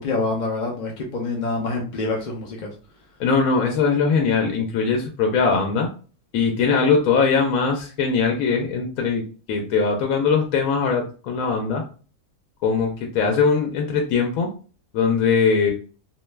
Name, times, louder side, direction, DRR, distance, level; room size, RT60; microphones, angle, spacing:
voice 1, 0.0-2.7, left 3 dB, 60° left, 1 dB, 0.5 m, -26 dB
voice 2, 3.2-5.9 6.3-9.2 9.5-11.8 12.6-12.9 13.1-14.5 14.9-15.7, left 5 dB, 80° left, 2 dB, 1.0 m, -20 dB
2.6 x 2.1 x 3.1 m, 0.38 s
omnidirectional pair, 1.5 m